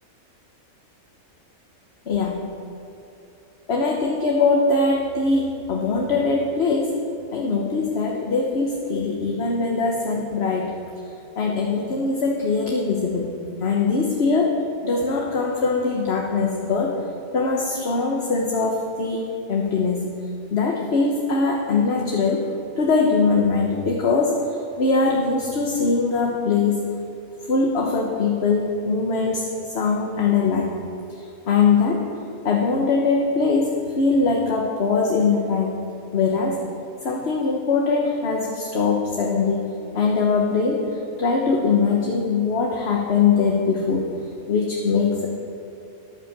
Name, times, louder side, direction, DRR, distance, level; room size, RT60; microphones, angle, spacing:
voice 1, 2.1-2.5 3.7-7.0 7.3-10.8 11.4-13.3 13.6-17.0 17.3-20.2 20.5-22.5 22.8-24.4 24.8-26.9 27.5-29.5 29.7-30.7 31.5-32.1 32.4-35.8 36.1-36.6 37.0-40.9 41.2-44.1 44.5-45.3, left 4 dB, 50° left, 0 dB, 1.3 m, -22 dB
13.0 x 10.0 x 7.3 m, 2.8 s
omnidirectional pair, 1.5 m